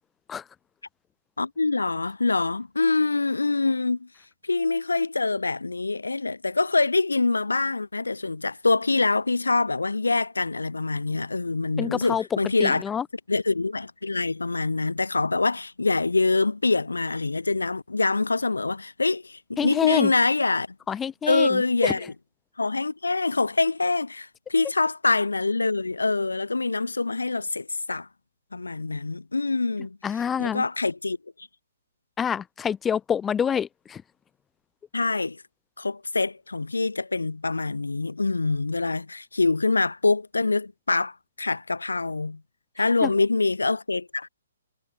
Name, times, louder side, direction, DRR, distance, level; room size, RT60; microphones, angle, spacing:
voice 1, 1.4-4.1 4.4-12.8 13.3-20.7 21.3-22.1 22.6-28.1 28.5-30.0 30.4-31.2 34.9-35.4 35.8-42.4 42.8-44.3, left 3 dB, 85° left, 2.7 m, -25 dB
voice 2, 11.8-13.0 19.6-20.1 20.9-21.9 30.0-30.6 32.2-34.0 43.0-43.1, left 7 dB, 15° left, 1.6 m, -27 dB
figure-of-eight pair, 130°, 0 cm